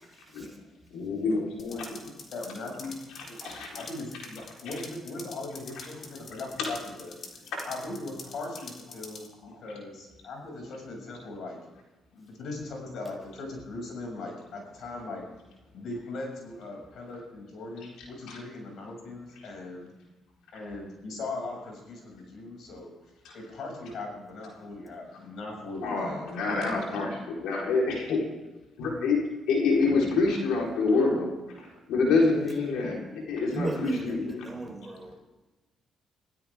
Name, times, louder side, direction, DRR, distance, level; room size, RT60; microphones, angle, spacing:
voice 1, 0.9-1.8 3.4-3.8 6.6-6.7 7.5-7.7 18.3-18.4 23.2-23.3 25.8-28.2 28.8-29.2 29.5-31.3 31.6-34.4, left 3 dB, 85° left, -2 dB, 4.1 m, -27 dB
sound 1, 1.6-9.3, left 4 dB, 45° left, 3.3 m, -46 dB
voice 2, 1.7-2.9 3.2-3.4 3.7-7.2 7.6-11.6 12.1-15.2 15.7-19.9 20.5-22.9 23.3-26.2, left 2 dB, 70° left, 1 dB, 6.9 m, -39 dB
voice 3, 33.5-35.2, right 3 dB, 15° right, 2 dB, 4.7 m, -35 dB
24.5 x 16.0 x 3.7 m, 1.1 s
cardioid pair, 90°, 0 cm